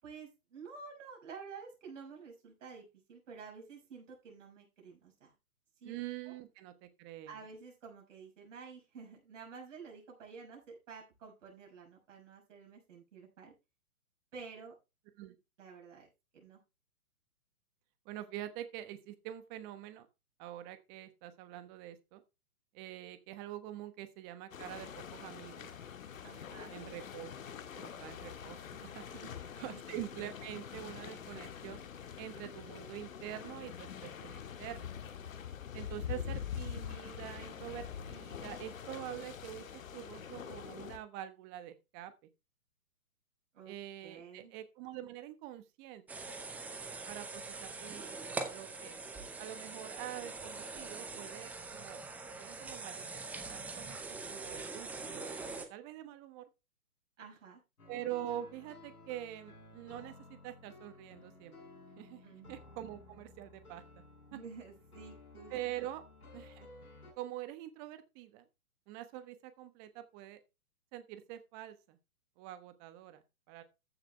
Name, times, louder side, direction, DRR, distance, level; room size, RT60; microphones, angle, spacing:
voice 1, 0.0-5.3 5.8-6.0 6.3-6.4 7.3-13.5 14.3-14.7 15.6-16.6 26.2-27.0 29.1-29.3 29.6-29.8 36.1-36.3 43.5-43.7 44.0-44.5 57.2-57.6 62.2-62.5 64.3-65.9, right 5 dB, 55° right, -1 dB, 6.0 m, -51 dB
voice 2, 5.8-7.3 15.2-15.3 18.0-20.1 20.4-22.2 22.7-25.7 26.7-29.1 29.6-31.8 32.2-34.9 35.7-42.1 43.6-46.2 47.1-49.0 49.4-52.0 52.4-54.0 54.3-56.4 57.9-61.6 62.0-62.2 62.5-63.8 65.5-66.0 66.3-66.7 67.2-68.5 68.9-70.4 70.9-72.0 72.4-73.6, right 12 dB, 20° right, 11 dB, 1.1 m, -45 dB
sound 1, 24.5-41.0, left 8 dB, 65° left, 1.8 m, -45 dB
sound 2, 46.1-55.6, right 3 dB, 5° right, 0.6 m, -43 dB
sound 3, 57.8-67.1, left 2 dB, 90° left, 6.1 m, -55 dB
14.5 x 7.1 x 3.3 m, 0.26 s
hypercardioid pair, 135°, 44 cm